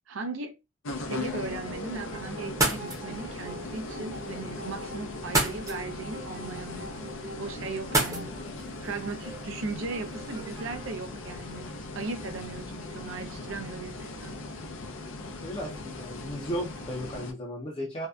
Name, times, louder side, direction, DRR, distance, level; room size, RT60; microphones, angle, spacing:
voice 1, 0.1-0.5 0.9-8.4 8.8-14.4, right 3 dB, 85° right, 0.5 m, -37 dB
sound 1, 0.8-17.3, left 2 dB, 90° left, 0.5 m, -39 dB
sound 2, 1.7-12.2, right 1 dB, 55° right, 0.7 m, -45 dB
sound 3, 2.4-10.8, right 2 dB, 15° right, 0.6 m, -34 dB
voice 2, 15.4-18.1, equal, 25° left, 0.4 m, -35 dB
2.6 x 2.1 x 2.2 m
head